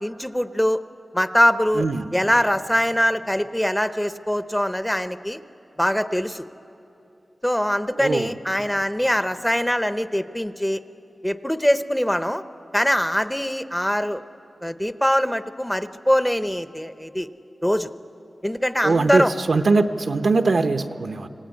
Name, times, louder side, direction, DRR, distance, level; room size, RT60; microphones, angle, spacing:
voice 1, 0.0-0.8 1.1-1.8 2.1-5.4 5.8-6.5 7.4-10.8 11.2-12.4 12.7-14.2 14.6-17.3 17.6-17.9 18.4-19.3, equal, 5° left, 0.7 m, -22 dB
voice 2, 1.7-2.1 7.9-8.3 18.8-21.3, right 3 dB, 75° right, 0.9 m, -21 dB
26.0 x 17.5 x 9.6 m
wide cardioid pair, 95°, 0 cm